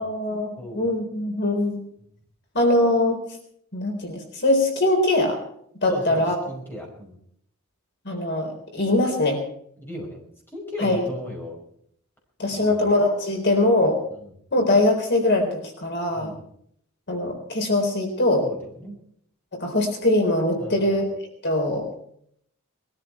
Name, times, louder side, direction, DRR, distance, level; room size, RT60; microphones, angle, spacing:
voice 1, 0.0-1.8 2.5-3.2 3.7-5.4 5.8-6.4 8.1-9.4 10.8-11.0 12.4-14.0 14.5-16.3 17.1-18.4 19.5-21.1 21.4-21.9, left 1 dB, 55° left, 2 dB, 4.0 m, -22 dB
voice 2, 0.6-0.9 5.9-7.2 9.8-10.2 10.5-11.6 12.5-12.9 14.2-14.3 16.1-16.5 18.4-19.0 20.6-21.0, equal, 10° left, 0 dB, 5.2 m, -36 dB
22.0 x 13.5 x 4.5 m, 0.68 s
head